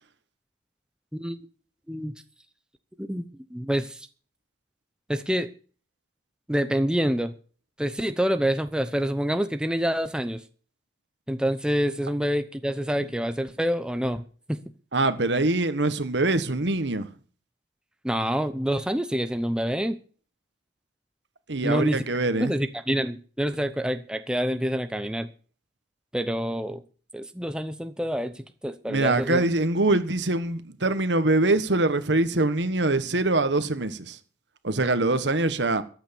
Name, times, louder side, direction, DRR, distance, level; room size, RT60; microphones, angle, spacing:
voice 1, 3.5-4.1 5.1-5.5 6.5-7.3 7.8-10.4 11.3-14.2 14.5-14.6 18.0-20.0 21.6-22.0 22.4-25.3 26.1-26.8 27.1-29.4, equal, 5° right, 0.7 m, -27 dB
voice 2, 14.9-17.1 21.5-22.5 28.9-34.2 34.6-35.8, right 2 dB, 75° right, 1.4 m, -24 dB
14.0 x 9.3 x 7.1 m
head